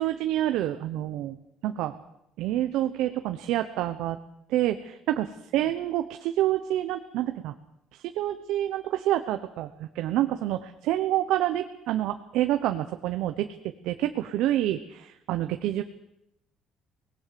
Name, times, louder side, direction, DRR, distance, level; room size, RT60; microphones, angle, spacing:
voice 1, 0.0-1.3 1.6-2.0 2.4-4.2 4.5-7.5 8.0-13.5 13.8-15.8, right 13 dB, 75° right, 8 dB, 1.1 m, -27 dB
24.5 x 19.0 x 7.0 m, 0.80 s
cardioid pair, 130°, 0 cm